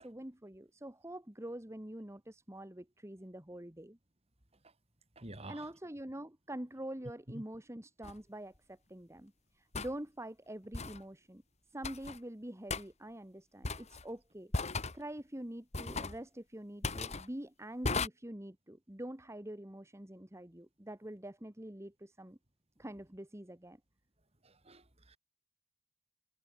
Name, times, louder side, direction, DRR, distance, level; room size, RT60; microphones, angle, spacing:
voice 1, 0.0-4.0 5.5-11.4 11.7-14.5 14.9-22.4 22.8-23.8, right 1 dB, 15° right, 1.4 m, -45 dB
voice 2, 5.2-5.7 7.3-7.4 24.4-25.2, right 2 dB, 30° right, 3.0 m, -49 dB
sound 1, 8.0-8.2 9.7-9.9 10.7-11.0 11.8-12.2 12.7-12.8 13.6-14.0 14.5-15.0 15.7-16.2 16.8-17.3 17.8-18.1, left 3 dB, 30° left, 1.6 m, -36 dB
head